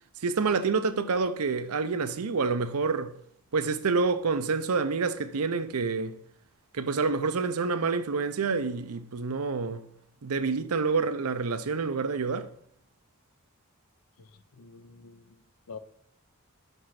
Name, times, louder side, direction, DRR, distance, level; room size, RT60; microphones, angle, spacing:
voice 1, 0.2-3.1 3.5-6.2 6.7-9.9 10.2-12.5, right 4 dB, 85° right, 0.6 m, -28 dB
voice 2, 14.6-15.4 15.7-15.8, left 5 dB, 90° left, 0.7 m, -46 dB
5.9 x 5.4 x 5.8 m
head